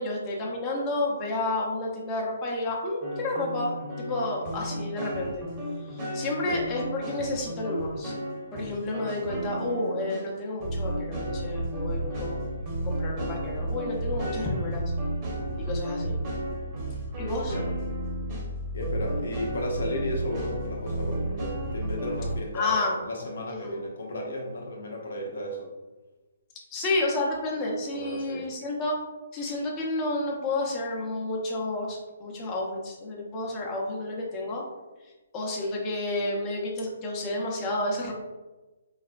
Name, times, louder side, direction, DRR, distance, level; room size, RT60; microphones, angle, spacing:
voice 1, 0.0-5.4 5.9-8.1 8.5-12.4 12.8-14.9 15.6-16.2 17.2-17.5 22.5-22.9 23.5-23.8 26.7-29.0 29.3-34.6 35.3-38.1, left 2 dB, 25° left, -3 dB, 0.7 m, -30 dB
sound 1, 3.0-10.3 10.6-22.4, right 1 dB, 30° right, 1.1 m, -33 dB
voice 2, 17.4-17.8 18.7-25.7 27.9-28.5, left 1 dB, 70° left, 0 dB, 0.6 m, -34 dB
4.0 x 2.1 x 2.4 m, 1.1 s
figure-of-eight pair, 140°, 0 cm